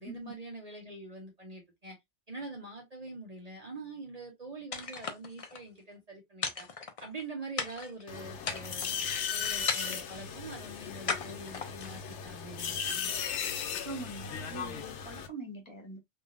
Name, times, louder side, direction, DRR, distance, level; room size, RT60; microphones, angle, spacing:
voice 1, 0.0-2.0 2.3-6.7 7.0-9.0 9.3-13.1, right 2 dB, 35° right, 0.9 m, -44 dB
sound 1, 4.7-5.6 6.4-7.2 7.6-8.0 8.4-9.0 9.7-10.2 11.1-12.0, left 5 dB, 45° left, 0.5 m, -36 dB
sound 2, 8.1-15.3, left 7 dB, 80° left, 0.9 m, -36 dB
voice 2, 13.8-16.0, right 2 dB, 25° left, 1.2 m, -43 dB
3.6 x 2.7 x 2.4 m
omnidirectional pair, 1.2 m